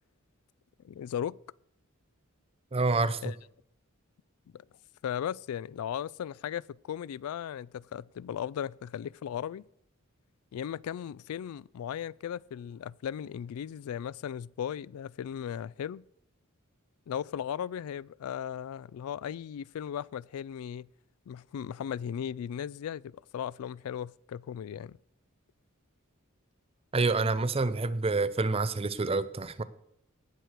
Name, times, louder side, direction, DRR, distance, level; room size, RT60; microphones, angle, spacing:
voice 1, 0.8-1.4 3.2-3.4 4.5-4.6 5.0-9.6 10.5-16.0 17.1-20.9 21.3-25.0, left 9 dB, 85° left, 0.3 m, -37 dB
voice 2, 2.7-3.2 26.9-29.6, right 3 dB, 25° right, 0.6 m, -27 dB
18.0 x 6.5 x 4.5 m
head